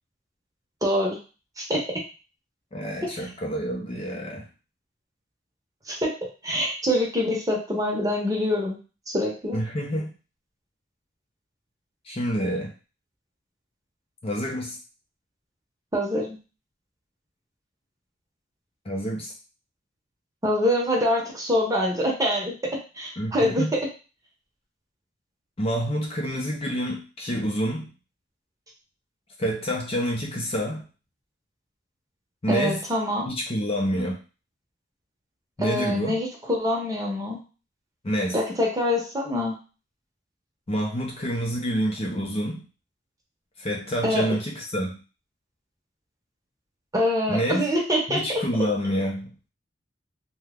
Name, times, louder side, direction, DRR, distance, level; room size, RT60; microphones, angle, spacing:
voice 1, 0.8-1.2 1.6-1.8 5.9-6.1 6.4-8.8 9.1-9.6 15.9-16.4 20.4-23.8 32.5-33.3 35.6-37.4 38.3-39.6 44.0-44.3 46.9-48.4, left 1 dB, 20° right, -2 dB, 0.8 m, -25 dB
voice 2, 2.7-4.5 9.5-10.1 12.1-12.7 14.2-14.8 18.8-19.3 23.2-23.7 25.6-27.9 29.4-30.8 32.4-32.8 33.3-34.2 35.6-36.2 38.0-38.4 40.7-42.6 43.6-44.9 47.3-47.6 48.1-49.3, equal, 30° left, -1 dB, 0.6 m, -27 dB
2.9 x 2.2 x 3.5 m, 0.33 s
head